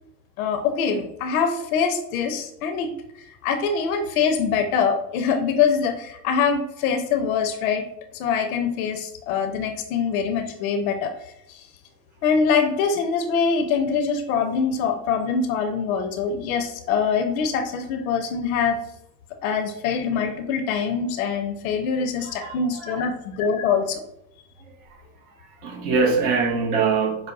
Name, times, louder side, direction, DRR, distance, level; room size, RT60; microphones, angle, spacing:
voice 1, 0.4-2.9 3.4-7.9 8.1-11.7 12.2-18.8 19.4-24.0, left 6 dB, 60° left, 0.6 m, -24 dB
voice 2, 22.2-23.1 25.6-27.3, right 4 dB, 20° right, 0.3 m, -23 dB
5.4 x 2.0 x 2.4 m
figure-of-eight pair, 80°, 49 cm